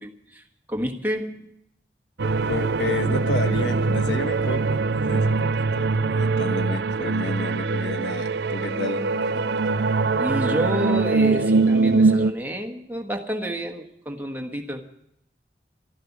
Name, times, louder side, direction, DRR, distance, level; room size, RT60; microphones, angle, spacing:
voice 1, 0.0-1.6 10.1-14.9, equal, 10° right, 2 dB, 1.4 m, -30 dB
sound 1, 2.2-12.3, right 3 dB, 75° right, 0.5 m, -22 dB
voice 2, 2.5-9.6, left 2 dB, 85° left, 7 dB, 1.3 m, -31 dB
13.0 x 11.5 x 8.3 m, 0.78 s
head